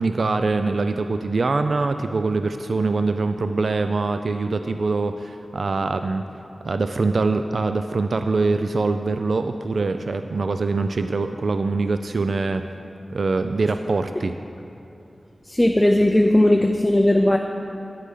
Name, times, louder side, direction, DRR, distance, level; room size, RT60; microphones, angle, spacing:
voice 1, 0.0-6.2 6.6-12.6 13.1-14.3, right 3 dB, 60° right, 8 dB, 0.3 m, -23 dB
voice 2, 15.5-17.4, left 1 dB, 15° left, 3 dB, 0.5 m, -17 dB
9.8 x 8.3 x 5.5 m, 2.8 s
wide cardioid pair, 95°, 0 cm